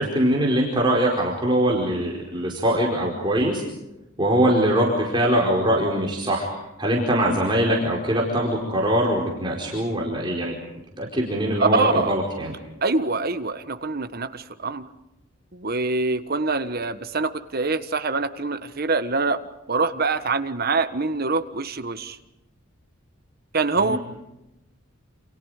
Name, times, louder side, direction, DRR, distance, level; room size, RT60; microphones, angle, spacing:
voice 1, 0.0-3.6 4.2-6.5 6.8-10.6 11.0-12.5 23.8-24.0, right 1 dB, 25° right, -2 dB, 4.7 m, -22 dB
voice 2, 11.6-12.2 12.8-14.8 15.5-19.4 19.7-22.2 23.5-24.0, right 3 dB, 45° right, 9 dB, 1.5 m, -24 dB
29.0 x 28.5 x 5.1 m, 0.95 s
head